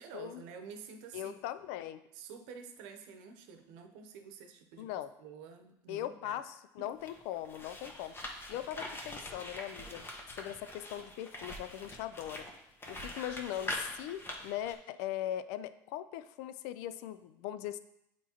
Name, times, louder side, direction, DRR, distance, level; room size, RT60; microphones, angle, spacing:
voice 1, 0.0-1.4 2.1-4.9 5.2-6.4 6.8-6.9, right 6 dB, 80° right, 6 dB, 0.8 m, -49 dB
voice 2, 1.1-2.0 4.8-5.1 5.9-8.2 8.5-12.5 12.9-17.8, left 12 dB, 80° left, 13 dB, 0.4 m, -40 dB
sound 1, 6.9-14.7, left 1 dB, 20° left, 1.0 m, -44 dB
8.3 x 4.3 x 2.9 m, 0.82 s
supercardioid pair, 95°, 10 cm